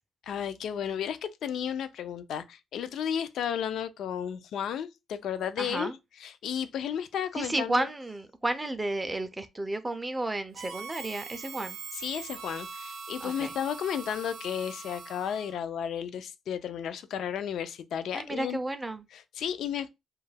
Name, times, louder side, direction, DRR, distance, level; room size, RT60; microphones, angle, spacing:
voice 1, 0.2-5.9 6.2-7.9 11.9-18.6 19.1-19.9, left 8 dB, 70° left, 0.3 m, -33 dB
voice 2, 5.6-5.9 7.4-11.8 13.2-13.5 18.1-19.1, right 2 dB, 15° right, 0.3 m, -32 dB
Harmonica, 10.5-15.6, right 5 dB, 80° right, 0.4 m, -42 dB
2.3 x 2.1 x 3.2 m
cardioid pair, 115°, 0 cm